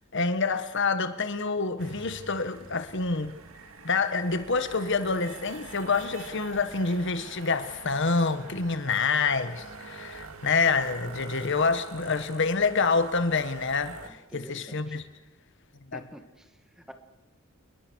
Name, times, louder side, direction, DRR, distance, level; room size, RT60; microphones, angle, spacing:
voice 1, 0.1-3.3 3.8-15.0 15.9-16.0, left 4 dB, 60° left, 1.4 m, -27 dB
sound 1, 1.8-14.1, right 3 dB, 75° right, 2.2 m, -45 dB
voice 2, 14.0-15.0 15.9-16.9, equal, 5° right, 1.8 m, -48 dB
28.5 x 21.5 x 6.4 m
head